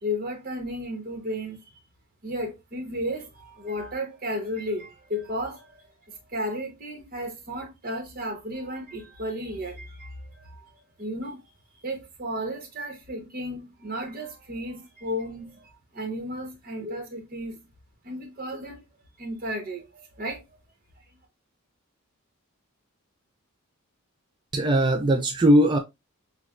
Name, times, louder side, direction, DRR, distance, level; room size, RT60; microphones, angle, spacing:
voice 1, 0.0-1.6 2.2-11.4 11.8-17.7 18.0-20.6, equal, 40° right, 1.0 m, -34 dB
voice 2, 24.5-25.8, right 1 dB, 20° right, 0.3 m, -19 dB
6.4 x 2.3 x 2.4 m
head